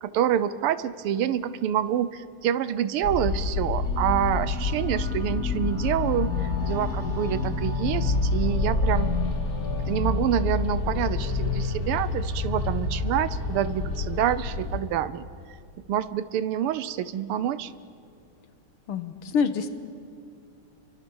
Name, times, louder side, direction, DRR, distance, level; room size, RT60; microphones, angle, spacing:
voice 1, 0.0-9.1 9.9-15.3 15.9-17.7, right 10 dB, 85° right, 14 dB, 1.7 m, -27 dB
sound 1, 3.0-14.8, left 3 dB, 45° left, 2.3 m, -27 dB
voice 2, 18.9-19.7, left 6 dB, 90° left, 9 dB, 2.2 m, -26 dB
29.5 x 24.5 x 7.1 m, 2.4 s
omnidirectional pair, 2.4 m